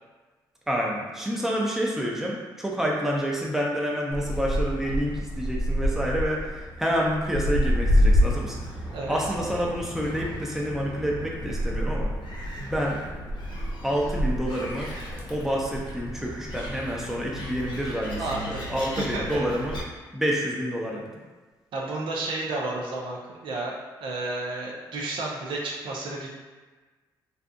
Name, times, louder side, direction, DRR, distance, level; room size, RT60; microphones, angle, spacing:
voice 1, 0.7-8.6 9.1-12.1 12.6-13.0 13.8-14.9 15.3-19.8 20.1-21.2, equal, 5° right, -3 dB, 0.5 m, -28 dB
Gull seagull, 4.1-19.8, equal, 65° left, 0.6 m, -29 dB
voice 2, 18.2-19.4 21.7-23.7 24.0-26.3, right 2 dB, 75° right, -2 dB, 0.5 m, -32 dB
2.7 x 2.4 x 2.2 m, 1.3 s
cardioid pair, 70°, 8 cm